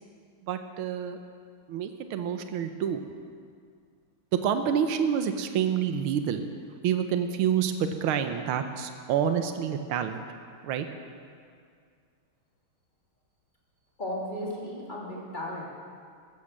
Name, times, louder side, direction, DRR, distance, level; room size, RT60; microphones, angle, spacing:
voice 1, 0.4-1.2 1.7-3.0 4.3-6.5 6.8-10.2 10.6-10.9, right 8 dB, 85° right, 8 dB, 1.7 m, -28 dB
voice 2, 14.0-15.6, left 1 dB, 20° left, -4 dB, 3.4 m, -35 dB
14.5 x 13.0 x 7.5 m, 2.2 s
omnidirectional pair, 2.3 m